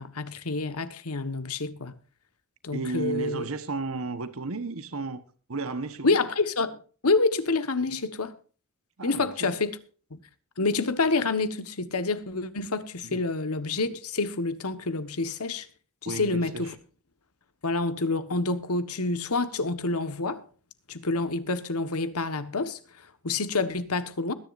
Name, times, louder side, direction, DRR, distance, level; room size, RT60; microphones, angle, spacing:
voice 1, 0.0-1.9 2.6-3.5 6.0-6.8 7.0-8.4 9.0-9.8 10.1-10.2 10.6-15.7 16.0-16.7 17.6-20.4 20.9-24.3, left 3 dB, 85° left, 1.4 m, -28 dB
voice 2, 2.7-5.2 5.5-6.2 9.0-9.5 13.0-13.2 16.0-16.7, right 3 dB, 70° right, 1.2 m, -33 dB
21.5 x 10.5 x 2.6 m
head